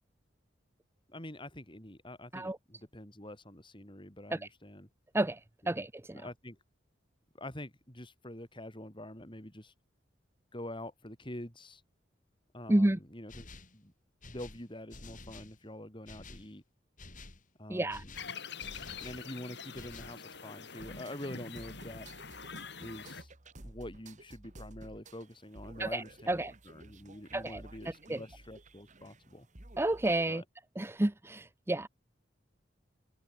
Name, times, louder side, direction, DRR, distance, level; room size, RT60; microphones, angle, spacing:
voice 1, 1.1-4.9 5.6-5.9 6.1-6.6 7.4-9.7 10.5-11.8 12.5-13.5 13.7-13.9 14.2-16.6 17.6-18.1 19.0-22.1 22.8-23.3 23.6-26.4 26.7-29.5 30.3-30.4, left 1 dB, 25° left, 6.0 m, -46 dB
voice 2, 5.7-6.2 12.7-13.0 17.7-18.0 25.8-26.5 27.3-27.6 28.1-28.2 29.8-30.4 30.8-31.9, right 1 dB, 15° right, 0.6 m, -30 dB
sound 1, 13.3-13.8 14.2-15.6 16.1-16.5 17.0-17.4 17.9-19.3 19.7-20.2, left 3 dB, 45° left, 3.5 m, -50 dB
sound 2, 18.1-23.2, left 5 dB, 65° left, 6.9 m, -45 dB
sound 3, 20.8-30.3, right 2 dB, 40° right, 2.3 m, -53 dB
head